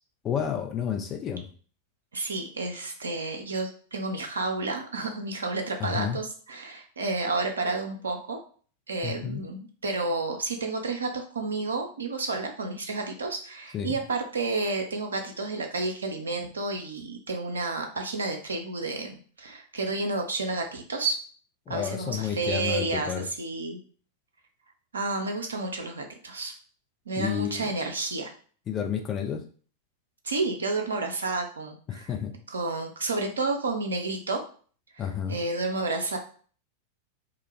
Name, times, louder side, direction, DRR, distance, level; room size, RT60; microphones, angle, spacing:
voice 1, 0.2-1.5 5.8-6.2 9.0-9.4 13.7-14.0 21.7-23.2 27.2-27.7 28.7-29.4 31.9-32.3 35.0-35.4, left 8 dB, 30° left, 5 dB, 0.4 m, -30 dB
voice 2, 2.1-8.4 8.9-21.2 21.7-23.8 24.9-26.5 27.1-28.3 30.2-32.1 32.5-34.4 34.9-35.0 35.3-36.2, right 3 dB, 70° right, 3 dB, 0.4 m, -30 dB
2.3 x 2.1 x 3.0 m, 0.43 s
figure-of-eight pair, 90°, 0 cm